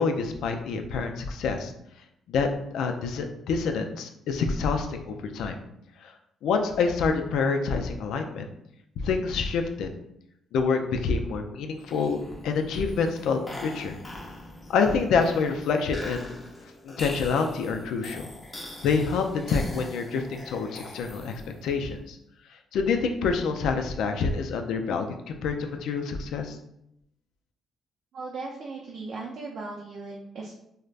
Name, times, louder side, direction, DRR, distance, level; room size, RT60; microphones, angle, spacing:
voice 1, 0.0-1.7 2.3-2.5 2.7-5.6 6.0-6.1 6.4-8.5 9.0-9.9 10.5-13.9 14.7-16.4 16.8-18.3 18.8-22.2 22.7-26.6, left 5 dB, 80° left, 5 dB, 0.3 m, -27 dB
sound 1, 11.8-21.7, left 1 dB, 25° left, 0.6 m, -42 dB
voice 2, 28.1-30.5, right 3 dB, 65° right, -3 dB, 0.4 m, -37 dB
3.2 x 2.0 x 2.4 m, 0.77 s
cardioid pair, 90°, 0 cm